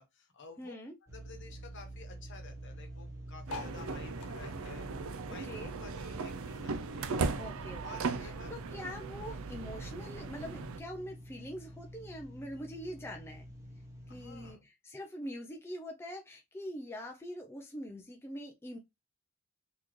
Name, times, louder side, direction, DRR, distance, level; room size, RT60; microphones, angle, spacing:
voice 1, 0.0-0.7 1.0-7.3 7.8-8.5 9.1-9.4 14.1-14.7, left 4 dB, 55° left, 1.1 m, -53 dB
voice 2, 0.6-1.0 5.5-5.7 7.4-13.5 14.1-18.8, equal, 10° left, 0.4 m, -44 dB
sound 1, 1.1-14.5, equal, 15° right, 1.1 m, -49 dB
sound 2, 3.4-6.2 6.5-8.1 8.5-8.6 8.8-8.9 9.1-9.5 10.3-10.4, left 3 dB, 90° left, 0.6 m, -48 dB
sound 3, 3.5-10.8, right 4 dB, 65° right, 0.4 m, -38 dB
4.1 x 2.9 x 3.1 m
head